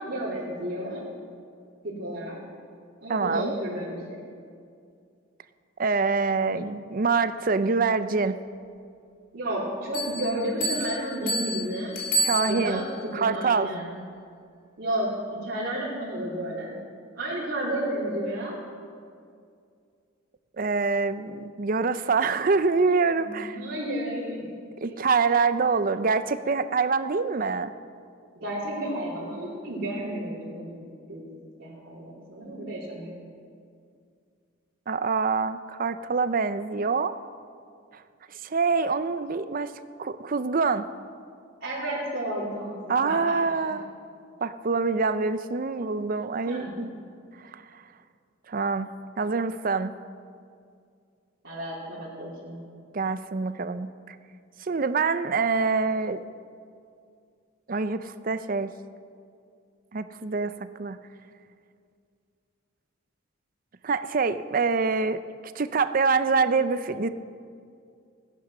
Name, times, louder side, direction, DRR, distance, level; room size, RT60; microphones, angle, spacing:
voice 1, 0.1-1.0 1.8-2.4 3.0-4.2 9.3-12.0 12.3-12.8 13.2-13.9 14.8-15.1 15.4-16.8 17.1-18.6 23.2-24.4 28.4-30.8 31.1-31.3 31.6-33.1 41.6-43.7 46.5-46.7 51.4-52.6, right 1 dB, 60° right, -9 dB, 3.2 m, -32 dB
voice 2, 3.1-3.5 5.8-8.4 12.2-12.8 13.1-13.7 20.6-23.6 24.8-27.7 34.9-37.1 38.4-39.7 40.0-40.8 42.9-43.8 44.4-46.9 48.5-48.9 49.2-49.9 52.9-54.1 54.6-56.2 57.7-58.7 59.9-60.5 60.8-61.0 63.8-65.2 65.6-67.1, right 4 dB, 45° right, 12 dB, 0.5 m, -25 dB
Bell, 9.9-13.0, right 1 dB, 45° left, 2.8 m, -30 dB
16.5 x 10.5 x 6.0 m, 2.3 s
head